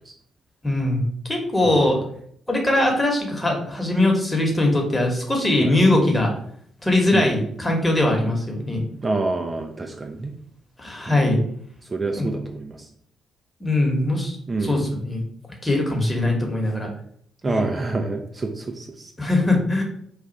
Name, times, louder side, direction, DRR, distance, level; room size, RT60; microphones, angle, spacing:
voice 1, 0.6-1.0 1.3-2.0 2.5-6.3 6.8-8.8 10.8-11.4 12.1-12.3 13.6-14.4 14.6-15.2 15.6-16.9 17.5-17.6 19.2-19.8, left 1 dB, 20° left, 1 dB, 1.1 m, -21 dB
voice 2, 1.6-2.0 5.6-5.8 7.1-7.3 8.2-8.3 9.0-10.3 11.1-11.3 11.9-12.9 14.5-14.9 17.4-19.1, right 3 dB, 30° right, 4 dB, 0.4 m, -27 dB
2.4 x 2.4 x 3.9 m, 0.65 s
hypercardioid pair, 40°, 0 cm